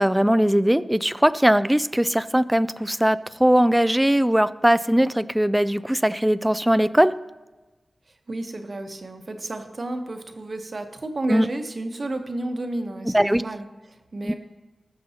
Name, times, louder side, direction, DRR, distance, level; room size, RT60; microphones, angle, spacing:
voice 1, 0.0-7.1 11.3-11.5 13.1-13.4 14.2-14.3, equal, 5° right, 14 dB, 0.3 m, -20 dB
voice 2, 8.3-14.3, right 2 dB, 45° right, 6 dB, 0.9 m, -31 dB
19.5 x 6.7 x 2.8 m, 1.2 s
wide cardioid pair, 90°, 0 cm